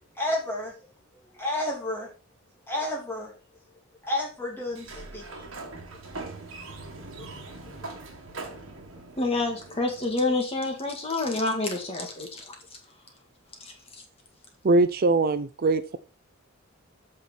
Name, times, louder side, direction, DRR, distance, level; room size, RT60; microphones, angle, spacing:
voice 1, 0.2-0.8 1.4-2.1 2.7-3.3 4.0-5.4 7.2-7.3 9.2-9.3, left 1 dB, 10° left, -2 dB, 3.0 m, -31 dB
Sliding door, 4.7-10.3, right 3 dB, 60° right, 1.8 m, -42 dB
voice 2, 9.2-12.4, left 2 dB, 25° left, 3 dB, 1.8 m, -27 dB
voice 3, 14.6-16.0, right 3 dB, 45° right, 12 dB, 0.5 m, -22 dB
8.5 x 5.9 x 4.4 m, 0.34 s
head